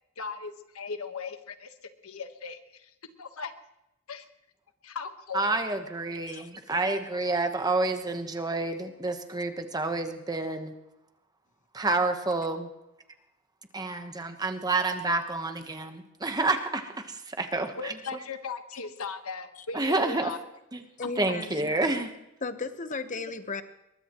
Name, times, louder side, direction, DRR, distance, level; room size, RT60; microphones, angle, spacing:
voice 1, 0.2-1.7 2.0-2.9 3.2-3.5 4.1-4.2 4.8-5.5 6.7-6.8 17.8-20.4 21.2-21.3, left 5 dB, 75° left, 8 dB, 1.3 m, -38 dB
voice 2, 5.3-10.7 11.7-12.7 13.7-17.7 19.7-20.3 20.7-20.8 21.2-22.1, right 2 dB, 15° right, 6 dB, 1.1 m, -29 dB
voice 3, 21.0-21.7 22.4-23.6, left 3 dB, 35° left, 10 dB, 1.0 m, -35 dB
22.5 x 21.0 x 3.0 m, 0.89 s
head